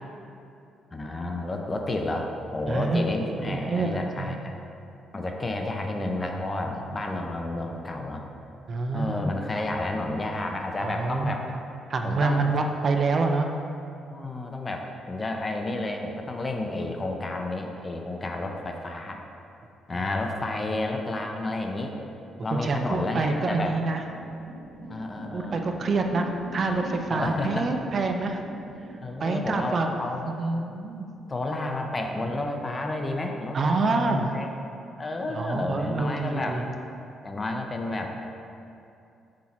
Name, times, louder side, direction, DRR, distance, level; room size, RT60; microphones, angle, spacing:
voice 1, 0.9-4.6 5.1-8.2 8.9-11.5 12.0-12.5 14.1-19.2 19.9-21.9 22.4-23.8 24.9-25.6 27.1-27.7 29.0-30.3 31.3-34.5 35.0-36.6 37.2-38.3, left 2 dB, 25° left, 3 dB, 0.6 m, -31 dB
voice 2, 2.7-3.9 4.2-4.4 8.7-9.3 10.8-11.4 11.9-13.5 22.5-24.0 25.3-26.2 26.5-28.4 29.2-30.0 30.3-31.1 33.5-34.3 35.3-36.6, right 3 dB, 45° right, 4 dB, 0.5 m, -27 dB
sound 1, 22.5-31.4, right 1 dB, 65° right, 1.4 m, -43 dB
6.2 x 4.3 x 4.2 m, 2.7 s
cardioid pair, 90°, 0 cm